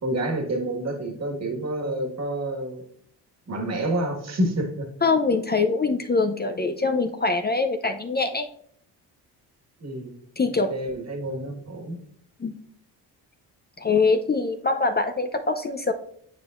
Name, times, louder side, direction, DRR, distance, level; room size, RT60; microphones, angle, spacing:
voice 1, 0.0-2.8 3.5-4.9 9.8-10.2 10.7-12.0, right 1 dB, 35° right, 2 dB, 1.7 m, -28 dB
voice 2, 5.0-8.5 10.4-10.7 12.4-12.5 13.8-15.9, left 4 dB, 25° left, 6 dB, 0.6 m, -23 dB
9.1 x 4.8 x 2.5 m, 0.66 s
supercardioid pair, 65°, 43 cm